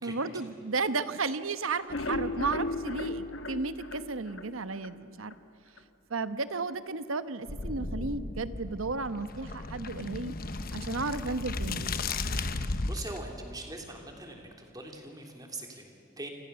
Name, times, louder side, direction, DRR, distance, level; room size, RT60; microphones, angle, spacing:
voice 1, 0.0-5.3 6.1-10.3 10.7-11.9, right 3 dB, 85° right, 12 dB, 1.1 m, -33 dB
sound 1, 1.7-4.9 5.3-5.4 5.8-5.9 6.2-6.3, left 2 dB, 65° left, 1.4 m, -35 dB
sound 2, 7.5-13.2, left 3 dB, 45° left, 1.1 m, -35 dB
voice 2, 12.5-16.3, right 2 dB, 20° right, 2 dB, 3.3 m, -43 dB
29.0 x 25.0 x 7.0 m, 2.9 s
head